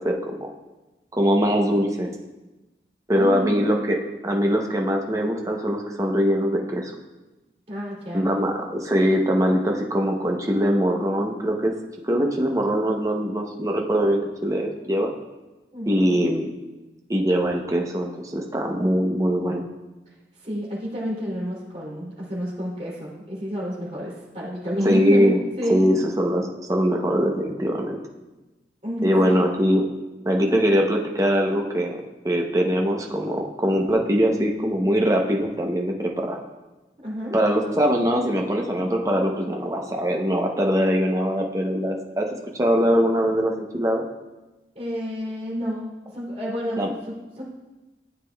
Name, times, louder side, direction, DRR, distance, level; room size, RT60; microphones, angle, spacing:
voice 1, 0.0-0.5 1.1-2.1 3.1-4.0 4.2-6.9 8.1-11.7 12.0-15.1 15.9-16.5 17.1-19.7 24.8-25.4 25.7-28.0 29.0-29.8 30.2-36.4 37.3-42.3 42.5-44.0 46.8-46.9, equal, 20° right, 1 dB, 0.7 m, -22 dB
voice 2, 3.1-3.7 7.7-8.3 15.7-16.1 20.4-25.9 28.8-29.4 37.0-37.4 44.7-47.4, equal, 35° right, -6 dB, 2.9 m, -30 dB
13.0 x 7.4 x 2.3 m, 1.1 s
head